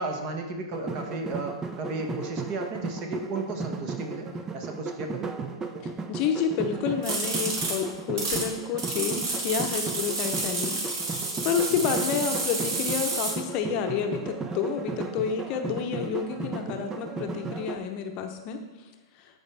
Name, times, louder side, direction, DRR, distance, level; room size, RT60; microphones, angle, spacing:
voice 1, 0.0-4.3 4.5-5.3 11.8-12.0, right 3 dB, 40° right, 3 dB, 1.4 m, -34 dB
sound 1, 0.7-17.8, right 3 dB, 15° right, 0.6 m, -36 dB
voice 2, 6.1-11.1 11.4-18.6, left 7 dB, 40° left, 5 dB, 0.8 m, -29 dB
sound 2, 7.0-8.4 8.8-13.3, right 3 dB, 55° right, 2.9 m, -30 dB
13.0 x 4.9 x 3.4 m, 1.2 s
hypercardioid pair, 125°, 3 cm